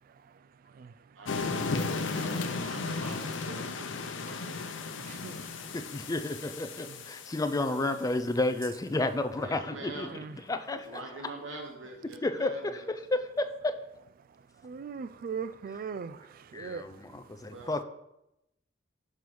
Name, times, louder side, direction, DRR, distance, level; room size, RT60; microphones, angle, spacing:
voice 1, 1.1-4.7 7.6-8.1 9.4-10.1 10.7-12.9 17.5-17.8, right 2 dB, 85° right, 0.9 m, -45 dB
sound 1, 1.3-7.9, left 4 dB, 90° left, 0.7 m, -35 dB
voice 2, 5.0-5.4 6.9-7.0 10.1-10.4 14.6-17.2, right 6 dB, 50° right, 0.3 m, -40 dB
voice 3, 5.7-10.2 10.5-11.0 12.2-13.8 16.5-17.8, left 2 dB, 20° left, 0.4 m, -31 dB
6.0 x 5.3 x 4.7 m
head